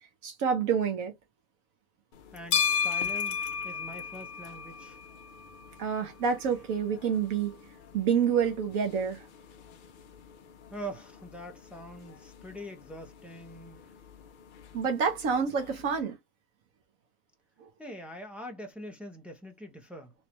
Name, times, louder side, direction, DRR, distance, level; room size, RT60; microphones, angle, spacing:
voice 1, 0.2-1.1 5.8-7.6 7.9-9.2 14.7-16.2 17.6-17.7, right 7 dB, 75° right, 1.2 m, -28 dB
sound 1, 2.1-16.0, left 7 dB, 65° left, 0.5 m, -37 dB
voice 2, 2.3-5.0 10.7-14.0 17.8-20.1, equal, ahead, 0.4 m, -44 dB
3.1 x 3.1 x 3.0 m
omnidirectional pair, 1.5 m